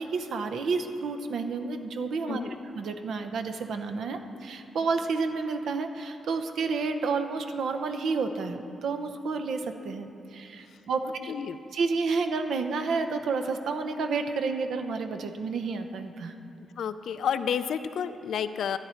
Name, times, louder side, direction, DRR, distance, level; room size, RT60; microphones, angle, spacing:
voice 1, 0.0-2.4 2.7-11.3 11.7-16.4, right 4 dB, 75° right, 7 dB, 0.7 m, -30 dB
voice 2, 2.3-2.6 11.0-11.6 16.8-18.8, left 8 dB, 75° left, 12 dB, 0.4 m, -31 dB
13.5 x 9.7 x 4.4 m, 2.8 s
cardioid pair, 105°, 0 cm